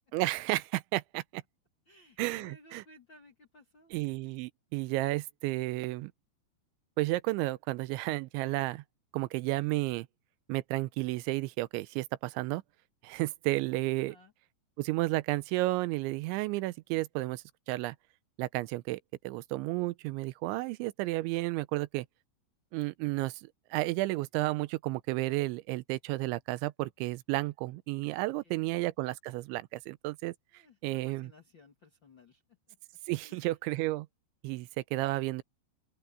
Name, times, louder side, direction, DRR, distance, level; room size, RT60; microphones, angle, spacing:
voice 1, 0.1-1.4 2.2-2.8 3.9-6.1 7.0-8.8 9.1-10.1 10.5-12.6 13.0-14.2 14.8-18.0 18.4-19.0 19.2-22.1 22.7-31.3 33.1-34.1 34.4-35.4, right 20 dB, 90° right, 3.1 m, -32 dB
voice 2, 1.8-3.9 14.0-14.3 28.1-28.7 30.5-32.4 32.7-32.8 33.2-33.5, left 2 dB, 50° left, 1.4 m, -59 dB
open air
omnidirectional pair, 5.2 m